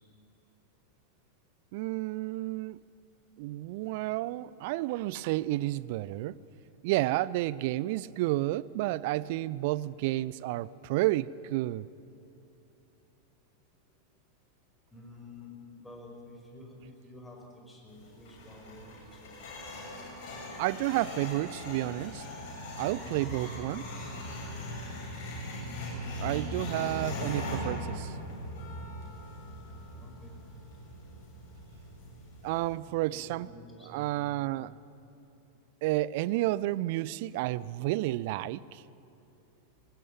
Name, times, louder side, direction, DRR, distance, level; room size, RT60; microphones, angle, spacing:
voice 1, 1.7-2.8 3.4-6.4 6.8-11.9 20.6-22.3 22.8-23.9 26.2-28.2 32.4-33.5 33.8-34.7 35.8-38.8, right 17 dB, 50° right, 0.4 m, -31 dB
voice 2, 14.9-19.5 29.9-30.4 32.9-34.5, left 1 dB, 5° left, 5.3 m, -50 dB
sound 1, 17.9-32.7, equal, 50° left, 7.4 m, -40 dB
21.0 x 18.5 x 8.7 m
figure-of-eight pair, 90°, 0 cm